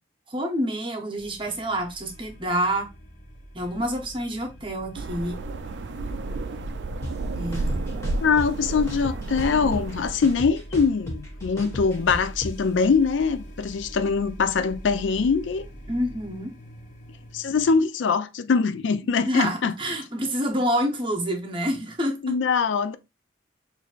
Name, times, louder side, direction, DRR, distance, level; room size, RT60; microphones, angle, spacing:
voice 1, 0.3-2.9 3.5-5.4 7.4-7.9 15.9-16.5 19.3-22.4, equal, 25° right, 0.9 m, -27 dB
sound 1, 1.2-17.8, equal, 40° left, 0.8 m, -43 dB
sound 2, 4.9-10.5, right 2 dB, 70° right, 0.4 m, -31 dB
sound 3, 7.0-7.1 7.5-8.5 8.9-9.9 10.2-12.5, equal, 15° left, 1.1 m, -34 dB
voice 2, 8.2-15.7 17.3-19.7 22.2-23.0, left 5 dB, 80° left, 0.4 m, -23 dB
6.1 x 2.7 x 2.4 m
head